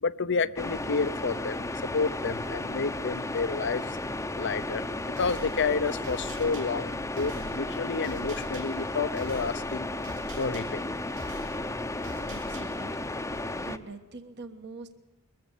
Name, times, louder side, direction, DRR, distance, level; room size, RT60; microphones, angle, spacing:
voice 1, 0.0-4.0 4.3-4.9 5.2-9.9 10.4-11.0, left 4 dB, 60° left, 15 dB, 0.7 m, -30 dB
sound 1, 0.5-13.8, left 2 dB, 15° left, 0.8 m, -34 dB
sound 2, 5.2-13.0, right 1 dB, 80° right, 5.0 m, -46 dB
voice 2, 12.2-13.1 13.6-15.0, right 3 dB, 55° right, 8 dB, 1.4 m, -44 dB
21.5 x 14.5 x 8.4 m, 1.2 s
head